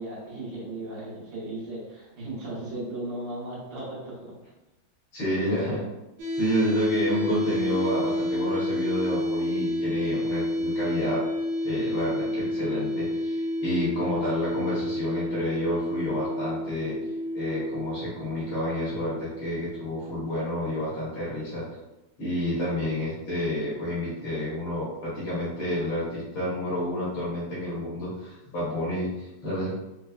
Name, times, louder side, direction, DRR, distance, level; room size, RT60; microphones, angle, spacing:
voice 1, 0.0-4.3, right 1 dB, 70° right, -7 dB, 1.7 m, -36 dB
voice 2, 5.1-5.8 6.3-11.2 11.6-16.9 17.3-21.6 22.2-29.7, equal, 70° left, -9 dB, 2.0 m, -29 dB
sound 1, 6.2-20.2, left 1 dB, 90° right, 1.6 m, -29 dB
5.2 x 2.0 x 2.3 m, 1.0 s
omnidirectional pair, 2.2 m